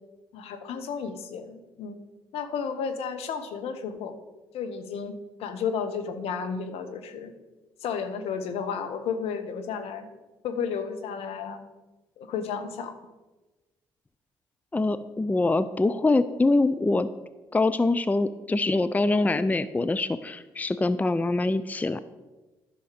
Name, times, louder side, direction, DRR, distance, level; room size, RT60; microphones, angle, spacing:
voice 1, 0.3-2.0 2.3-4.2 4.5-5.1 5.4-7.3 7.8-10.1 10.4-11.6 12.2-12.9, left 6 dB, 65° left, 7 dB, 1.0 m, -32 dB
voice 2, 14.7-17.1 17.5-22.0, left 2 dB, 15° left, 13 dB, 0.5 m, -24 dB
11.0 x 6.3 x 5.0 m, 1.2 s
hypercardioid pair, 45°, 11 cm